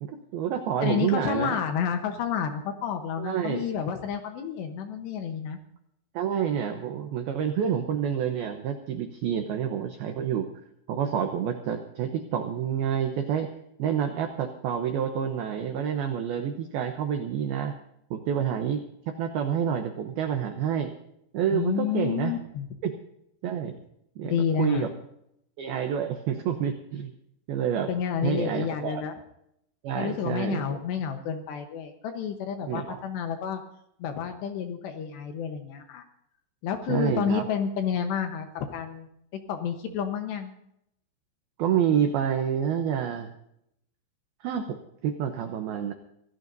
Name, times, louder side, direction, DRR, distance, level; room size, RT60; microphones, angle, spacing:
voice 1, 0.0-1.6 3.2-3.7 6.1-10.5 10.9-13.5 13.8-17.7 18.1-20.9 21.3-22.3 22.8-22.9 23.4-23.8 24.2-24.3 24.6-24.9 25.6-27.1 27.5-27.9 28.2-29.0 29.8-30.8 32.7-33.0 36.9-37.4 41.6-43.3 44.4-45.9, right 8 dB, 80° right, 5 dB, 2.2 m, -28 dB
voice 2, 0.8-5.6 21.5-22.7 24.2-24.9 27.9-29.1 29.9-33.6 34.0-36.0 36.6-39.1 39.5-40.5, left 7 dB, 70° left, 5 dB, 2.9 m, -30 dB
26.0 x 17.0 x 2.7 m, 0.76 s
omnidirectional pair, 5.8 m